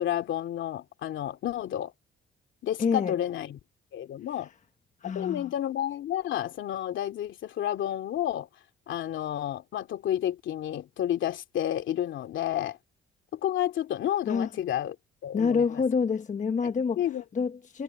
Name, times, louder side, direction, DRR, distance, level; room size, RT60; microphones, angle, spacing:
voice 1, 0.0-1.9 2.6-3.6 3.9-4.5 5.0-8.5 8.9-12.8 13.3-14.9 15.2-15.7 16.6-16.7 17.0-17.2, left 11 dB, 75° left, 2.7 m, -30 dB
voice 2, 2.8-3.1 5.0-5.5 14.3-14.5 15.3-17.0 17.3-17.8, left 5 dB, 40° left, 1.2 m, -27 dB
cardioid pair, 90°, 20 cm